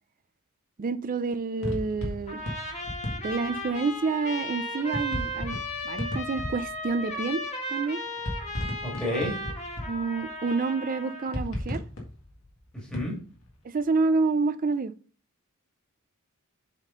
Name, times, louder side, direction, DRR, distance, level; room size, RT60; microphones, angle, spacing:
voice 1, 0.8-2.4 3.2-7.4 7.7-8.0 9.9-11.8 13.6-14.9, right 4 dB, 40° right, 0.4 m, -28 dB
sound 1, 1.6-3.8 4.4-7.1 7.9-10.4 11.3-13.5, left 1 dB, 70° left, 1.8 m, -35 dB
Trumpet, 2.3-11.4, equal, 30° left, 1.5 m, -36 dB
voice 2, 8.8-9.4 12.7-13.1, left 1 dB, 5° left, 2.0 m, -30 dB
7.3 x 3.7 x 3.8 m
head